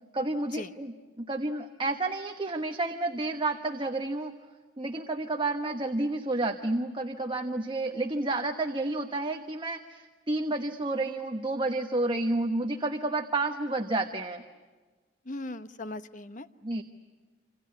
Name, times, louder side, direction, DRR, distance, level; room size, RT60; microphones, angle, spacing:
voice 1, 0.1-4.3 4.8-14.4 16.6-16.8, right 2 dB, 25° right, 5 dB, 1.1 m, -30 dB
voice 2, 15.3-16.5, left 2 dB, 40° left, 11 dB, 1.0 m, -38 dB
27.0 x 26.5 x 8.4 m, 1.3 s
head